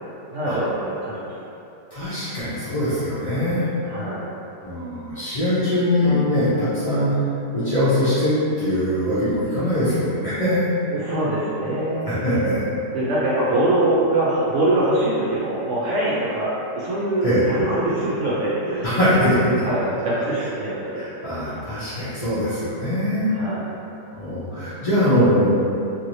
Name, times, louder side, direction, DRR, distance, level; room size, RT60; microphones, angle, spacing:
voice 1, 0.3-1.3 3.8-4.3 10.9-12.2 12.9-18.9 19.6-21.0 23.3-23.7, right 1 dB, 65° right, -8 dB, 0.8 m, -23 dB
voice 2, 1.9-3.7 4.6-7.1 7.5-10.7 12.0-12.6 17.2-17.5 18.8-19.5 21.0-23.3 24.1-25.5, left 1 dB, 65° left, -14 dB, 0.3 m, -22 dB
sound 1, 6.0-8.3, left 3 dB, ahead, 1.1 m, -31 dB
3.0 x 2.6 x 2.6 m, 2.8 s
omnidirectional pair, 1.7 m